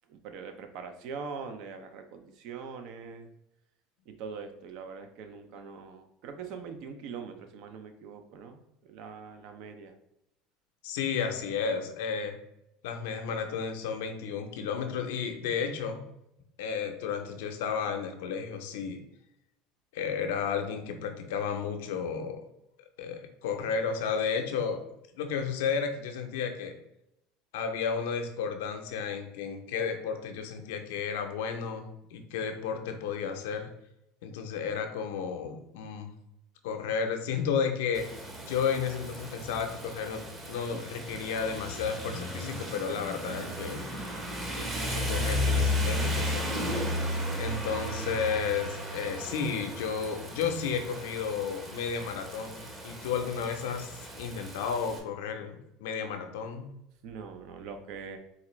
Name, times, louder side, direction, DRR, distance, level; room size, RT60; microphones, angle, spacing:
voice 1, 0.1-3.3 4.1-10.0 57.0-58.2, right 5 dB, 65° right, 7 dB, 0.5 m, -42 dB
voice 2, 10.8-12.4 12.8-16.0 16.6-19.0 19.9-22.4 23.0-24.8 25.1-26.8 27.5-33.7 34.2-36.1 36.6-38.1 38.5-40.2 40.5-43.8 44.5-52.6 52.8-56.7, left 6 dB, 80° left, 5 dB, 0.6 m, -33 dB
Rain, 37.9-55.0, left 1 dB, 30° right, 0.9 m, -34 dB
4.1 x 2.5 x 3.0 m, 0.82 s
supercardioid pair, 100°, 0 cm